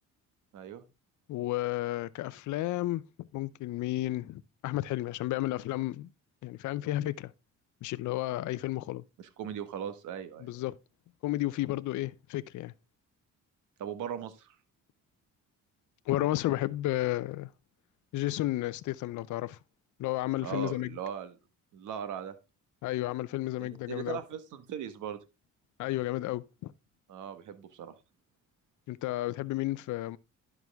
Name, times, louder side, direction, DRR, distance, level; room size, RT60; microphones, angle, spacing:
voice 1, 0.5-0.8 9.2-10.5 13.8-14.5 20.4-21.4 21.7-22.3 23.6-25.2 27.1-27.9, right 8 dB, 80° right, 1.4 m, -39 dB
voice 2, 1.3-6.1 6.4-7.3 7.8-9.0 10.4-10.7 11.2-12.7 16.1-17.5 18.1-19.6 20.0-20.9 22.8-24.2 25.8-26.7 28.9-30.2, left 16 dB, 80° left, 0.6 m, -32 dB
11.0 x 6.0 x 3.5 m
cardioid pair, 90°, 30 cm